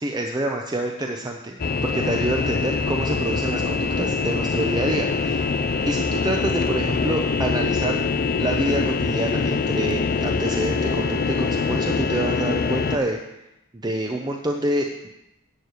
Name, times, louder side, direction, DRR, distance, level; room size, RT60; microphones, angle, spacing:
voice 1, 0.0-5.5 5.9-8.0 8.4-13.2 13.7-15.1, right 1 dB, 20° right, 2 dB, 0.7 m, -27 dB
sound 1, 1.6-13.0, left 4 dB, 40° left, 0.5 m, -24 dB
11.5 x 4.7 x 8.2 m, 0.87 s
head